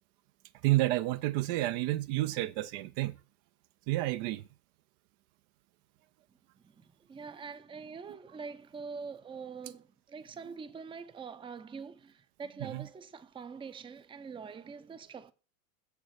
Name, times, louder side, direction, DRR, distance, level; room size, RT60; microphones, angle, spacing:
voice 1, 0.6-3.2 3.9-4.4 12.6-12.9, right 17 dB, 55° right, 0.5 m, -30 dB
voice 2, 6.6-15.3, right 5 dB, 10° right, 0.6 m, -44 dB
7.0 x 6.7 x 4.7 m
hypercardioid pair, 90°, 43 cm